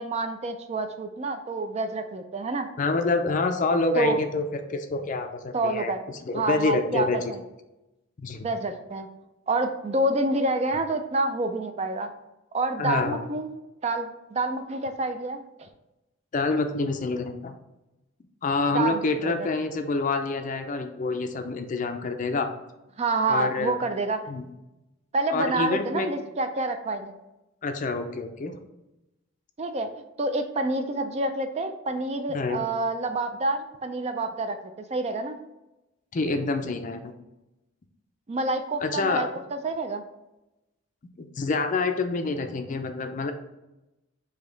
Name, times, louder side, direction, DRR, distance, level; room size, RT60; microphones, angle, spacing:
voice 1, 0.0-2.7 4.0-4.2 5.5-6.0 6.3-7.4 8.4-9.1 9.5-12.1 12.5-13.5 13.8-15.7 18.7-19.5 23.0-24.2 25.1-27.1 29.6-29.9 30.2-34.6 34.9-35.4 38.3-40.0, right 2 dB, 30° right, 7 dB, 0.3 m, -28 dB
voice 2, 2.8-4.4 4.7-5.9 6.3-7.2 8.2-8.5 12.8-13.2 16.3-17.5 18.4-22.5 23.3-23.8 24.3-24.5 25.3-26.1 27.6-28.5 32.3-32.6 36.1-37.1 38.8-39.3 41.2-43.3, left 3 dB, 40° left, 7 dB, 0.4 m, -27 dB
5.0 x 2.7 x 3.9 m, 0.96 s
head